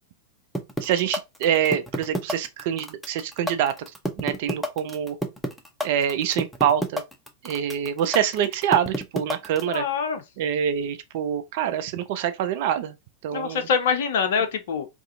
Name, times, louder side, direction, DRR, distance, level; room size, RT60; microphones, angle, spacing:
sound 1, 0.5-9.8, equal, 5° left, 0.5 m, -28 dB
voice 1, 0.8-3.7 4.2-5.2 5.8-7.0 7.4-9.8 10.4-13.0 13.2-13.7, right 9 dB, 50° right, 0.3 m, -25 dB
voice 2, 9.7-10.2 13.3-14.9, left 6 dB, 55° left, 0.5 m, -24 dB
2.4 x 2.3 x 2.5 m
figure-of-eight pair, 90°, 0 cm